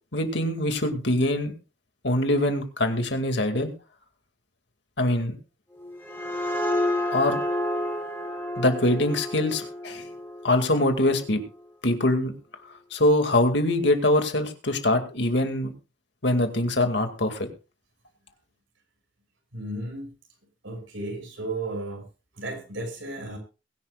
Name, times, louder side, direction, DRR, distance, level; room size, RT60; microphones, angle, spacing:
voice 1, 0.1-1.5 2.0-3.7 5.0-5.3 7.1-7.4 8.6-10.1 10.4-11.4 11.8-12.3 12.9-15.7 16.2-17.5, left 1 dB, 60° left, 6 dB, 2.2 m, -23 dB
sound 1, 5.8-11.2, left 1 dB, 10° left, 3.9 m, -30 dB
voice 2, 19.5-20.1 20.6-22.1 22.3-23.4, right 2 dB, 90° right, 3 dB, 6.0 m, -34 dB
22.5 x 10.5 x 2.4 m, 0.32 s
head